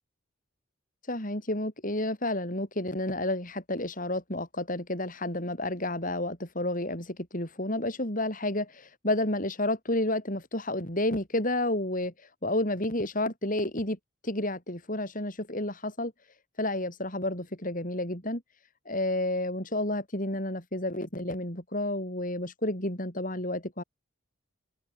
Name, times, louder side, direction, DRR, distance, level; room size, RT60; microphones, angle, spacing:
voice 1, 1.1-14.0 14.2-16.1 16.6-18.4 18.9-23.8, left 1 dB, 40° left, 7.1 m, -30 dB
open air
head